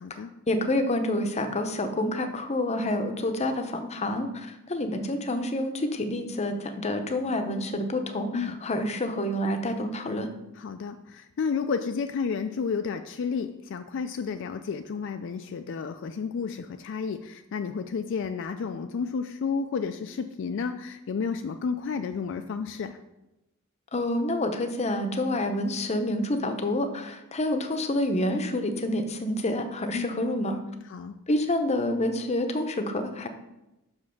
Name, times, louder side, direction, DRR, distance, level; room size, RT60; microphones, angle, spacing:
voice 1, 0.5-10.3 23.9-30.6 31.3-33.3, left 1 dB, 30° left, 7 dB, 0.7 m, -28 dB
voice 2, 10.6-23.0 29.9-30.2 30.9-31.1, left 5 dB, 60° left, 8 dB, 0.4 m, -31 dB
5.9 x 5.3 x 5.7 m, 0.95 s
head